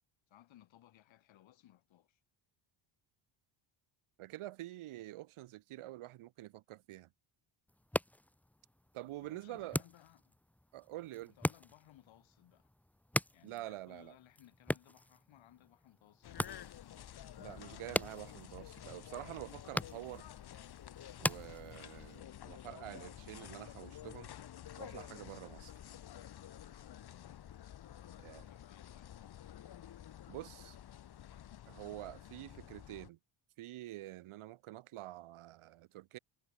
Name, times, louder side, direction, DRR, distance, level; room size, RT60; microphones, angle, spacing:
voice 1, 0.3-2.2 9.2-10.4 11.3-12.7 13.3-16.8 26.9-27.4 28.0-29.1, left 13 dB, 65° left, 7.2 m, -62 dB
voice 2, 4.2-7.1 8.9-9.8 10.7-11.3 13.4-14.1 17.4-20.3 21.2-24.3 24.8-25.7 28.2-28.4 30.3-30.8 31.7-33.2 33.6-36.2, right 15 dB, 80° right, 3.6 m, -47 dB
sound 1, 7.7-22.2, left 1 dB, 5° left, 1.4 m, -42 dB
sound 2, 16.2-33.1, left 11 dB, 50° left, 2.9 m, -51 dB
cardioid pair, 155°, 49 cm